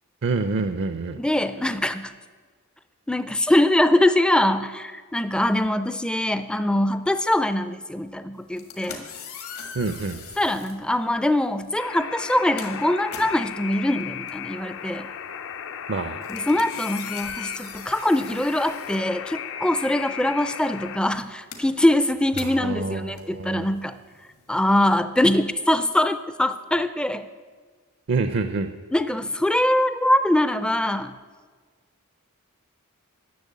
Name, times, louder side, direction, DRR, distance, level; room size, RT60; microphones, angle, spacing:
voice 1, 0.2-1.2 9.7-10.2 15.9-16.2 22.6-23.7 28.1-28.7, right 3 dB, 50° right, 10 dB, 0.5 m, -26 dB
voice 2, 1.2-2.1 3.1-9.0 10.4-15.1 16.3-24.0 24.5-27.3 28.9-31.1, left 1 dB, 5° left, 12 dB, 0.3 m, -23 dB
sound 1, 8.4-10.8 11.7-11.9 12.2-19.7 20.0-24.7, left 6 dB, 75° left, 1.7 m, -42 dB
Alarm, 11.8-21.0, left 8 dB, 60° left, 0.5 m, -35 dB
10.5 x 6.9 x 8.4 m, 1.5 s
head